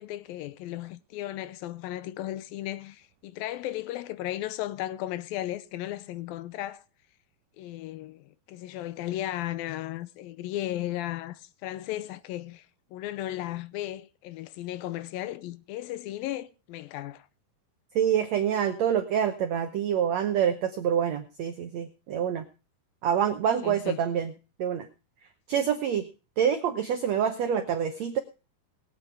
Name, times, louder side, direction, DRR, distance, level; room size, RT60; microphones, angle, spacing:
voice 1, 0.0-6.8 7.6-12.7 12.9-17.3 23.6-24.1, left 14 dB, 75° left, 2.4 m, -35 dB
voice 2, 17.9-22.4 23.0-24.3 24.6-24.9 25.5-26.0 26.4-28.2, right 8 dB, 85° right, 1.5 m, -26 dB
21.0 x 8.4 x 3.4 m
omnidirectional pair, 4.4 m